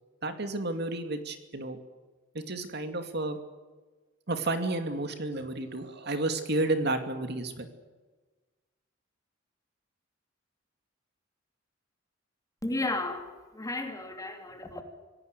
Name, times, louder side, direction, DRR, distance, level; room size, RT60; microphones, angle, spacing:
voice 1, 0.2-1.8 2.3-3.4 4.3-7.7, right 2 dB, 60° right, 7 dB, 2.5 m, -31 dB
voice 2, 12.6-14.8, left 2 dB, 20° left, 5 dB, 2.9 m, -33 dB
26.0 x 17.5 x 8.2 m, 1.3 s
head